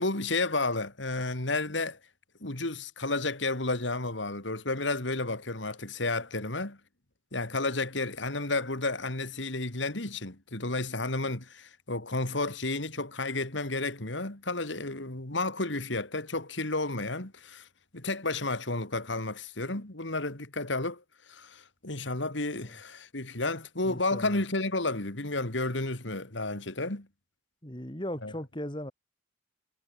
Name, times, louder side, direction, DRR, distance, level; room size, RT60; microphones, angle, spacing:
voice 1, 0.0-2.0 2.4-6.8 7.3-17.7 17.9-21.0 21.3-27.1 28.2-28.3, left 2 dB, 75° left, 3.2 m, -32 dB
voice 2, 23.8-24.4 27.6-28.9, left 1 dB, 25° left, 2.6 m, -38 dB
head